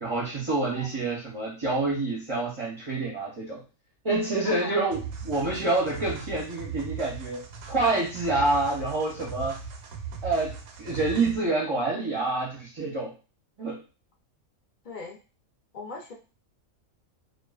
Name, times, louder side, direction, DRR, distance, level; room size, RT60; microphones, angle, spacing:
voice 1, 0.0-3.6 4.0-9.6 10.2-13.1 13.6-13.8, right 2 dB, 35° right, -5 dB, 0.5 m, -27 dB
voice 2, 0.7-1.0 4.4-4.8 14.8-15.2 15.7-16.1, left 3 dB, 55° left, 0 dB, 0.5 m, -39 dB
sound 1, 4.9-11.5, right 6 dB, 90° right, 1.0 m, -39 dB
2.4 x 2.3 x 2.3 m, 0.33 s
omnidirectional pair, 1.5 m